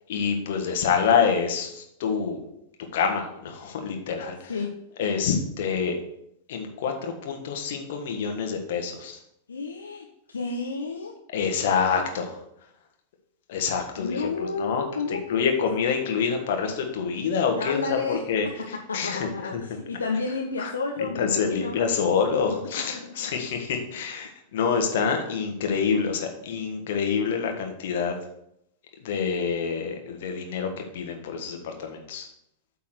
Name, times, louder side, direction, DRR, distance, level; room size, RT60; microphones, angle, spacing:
voice 1, 0.1-2.4 2.9-4.5 5.0-6.0 6.5-9.2 11.3-12.4 13.5-14.8 15.3-18.0 18.3-18.5 18.9-19.6 20.6-20.7 21.2-28.1 29.0-32.3, left 6 dB, 55° left, 4 dB, 1.4 m, -26 dB
voice 2, 9.5-11.1 14.0-15.6 17.5-18.2 18.9-21.8 22.9-24.0, left 4 dB, 75° left, 1 dB, 0.7 m, -31 dB
8.5 x 3.7 x 6.2 m, 0.76 s
figure-of-eight pair, 90°, 0 cm